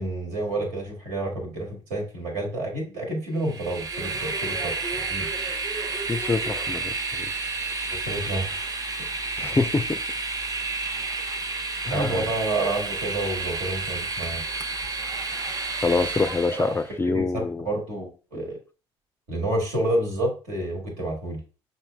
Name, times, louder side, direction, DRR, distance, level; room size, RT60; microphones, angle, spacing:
voice 1, 0.0-5.3 7.9-8.8 11.9-14.4 16.6-16.7 17.1-18.6 19.3-21.4, right 2 dB, 75° right, 1.5 m, -29 dB
Train, 3.4-16.9, right 3 dB, 30° right, 0.7 m, -30 dB
voice 2, 6.1-7.3 9.4-10.0 11.8-12.2 15.8-17.7 18.3-18.4, left 3 dB, 15° left, 0.3 m, -25 dB
6.0 x 2.7 x 2.2 m
hypercardioid pair, 55°, 13 cm